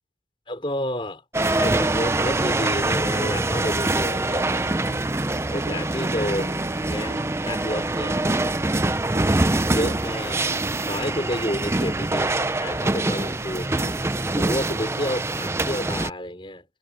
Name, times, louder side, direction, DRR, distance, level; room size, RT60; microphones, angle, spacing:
voice 1, 0.5-4.7 5.5-8.3 9.7-10.5 10.9-13.9 14.4-16.6, left 1 dB, 30° left, 4.7 m, -30 dB
sound 1, 1.3-16.1, right 2 dB, 15° right, 0.5 m, -24 dB
sound 2, 1.9-15.2, equal, 35° right, 6.9 m, -51 dB
sound 3, 6.2-14.3, right 1 dB, 65° right, 3.5 m, -45 dB
head